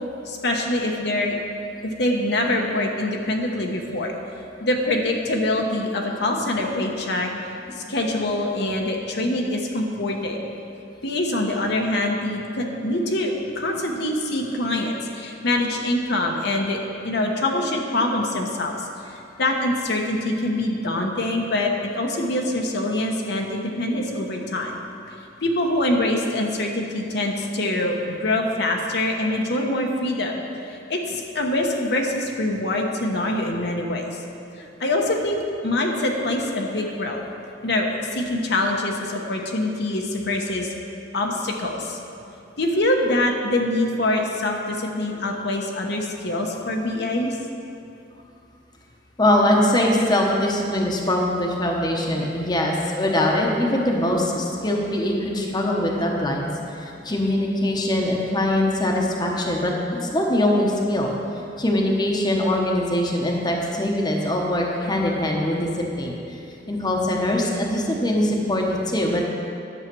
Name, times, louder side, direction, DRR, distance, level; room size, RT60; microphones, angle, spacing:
voice 1, 0.2-1.4 1.8-4.1 4.6-7.3 7.7-10.5 11.0-24.8 25.1-25.2 25.4-34.2 34.6-37.2 37.6-40.7 41.1-42.0 42.6-47.4, left 1 dB, 65° left, 1 dB, 1.1 m, -24 dB
voice 2, 49.2-56.5 56.7-61.1 61.6-66.4 66.7-69.3, left 1 dB, 25° left, -1 dB, 1.1 m, -22 dB
11.0 x 7.4 x 6.1 m, 2.6 s
head